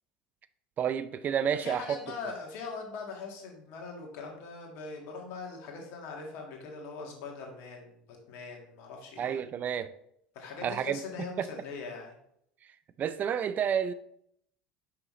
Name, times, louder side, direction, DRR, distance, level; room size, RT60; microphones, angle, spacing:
voice 1, 0.8-2.0 9.2-9.9 10.6-11.0 11.4-11.5 13.0-13.9, right 8 dB, 40° right, 0.4 m, -30 dB
voice 2, 1.5-9.4 10.3-12.1, left 4 dB, 65° left, 1.7 m, -41 dB
5.7 x 5.5 x 3.1 m
hypercardioid pair, 80°, 4 cm